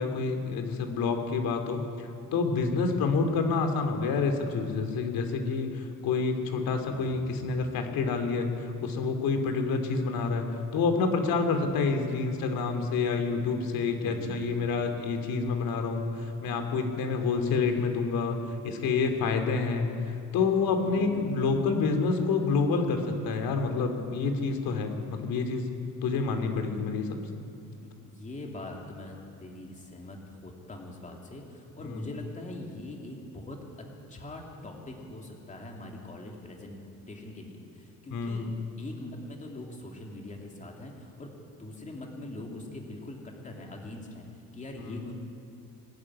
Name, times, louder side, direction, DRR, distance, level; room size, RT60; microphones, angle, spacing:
voice 1, 0.0-10.4 10.7-18.4 18.6-19.9 20.3-25.7 26.0-27.2 31.8-32.0 38.1-38.6 44.8-45.0, left 4 dB, 85° left, 5 dB, 2.9 m, -28 dB
voice 2, 6.9-7.7 11.6-11.7 14.0-14.5 20.7-21.6 27.8-36.8 37.1-38.5 38.8-41.3 41.6-44.2 44.5-45.1, left 1 dB, 20° left, 1 dB, 2.8 m, -43 dB
22.5 x 12.5 x 9.9 m, 2.6 s
cardioid pair, 170°, 34 cm